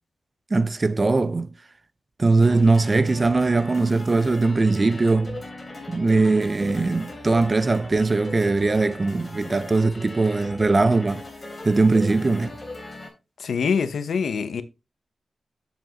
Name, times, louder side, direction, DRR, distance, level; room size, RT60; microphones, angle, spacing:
voice 1, 0.5-1.5 2.2-5.4 5.9-11.2 11.6-12.6, right 3 dB, 25° right, 0.4 m, -20 dB
sound 1, 2.4-13.1, left 2 dB, 20° left, 3.4 m, -39 dB
voice 2, 13.4-14.6, left 6 dB, 85° left, 0.8 m, -24 dB
7.9 x 7.2 x 2.9 m
wide cardioid pair, 160°, 0 cm